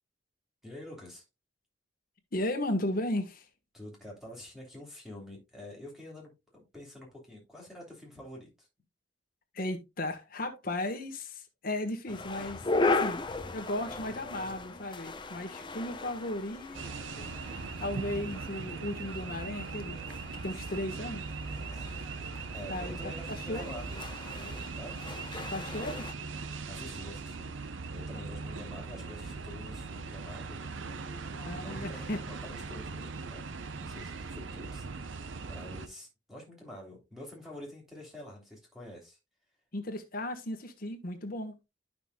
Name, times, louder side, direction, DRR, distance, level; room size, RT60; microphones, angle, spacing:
voice 1, 0.6-1.2 3.7-8.7 21.6-25.0 26.7-27.5 27.9-31.2 31.6-33.5 33.7-39.2, left 1 dB, ahead, 3.2 m, -47 dB
voice 2, 2.3-3.5 9.5-13.2 13.5-17.5 17.8-20.0 20.4-21.2 22.7-23.1 23.5-23.7 25.5-26.1 28.1-28.3 31.3-32.2 39.7-41.7, left 1 dB, 50° left, 1.3 m, -35 dB
sound 1, 12.1-26.1, left 3 dB, 25° left, 0.7 m, -37 dB
sound 2, 16.7-35.9, right 4 dB, 80° right, 0.7 m, -40 dB
11.5 x 5.9 x 2.3 m
head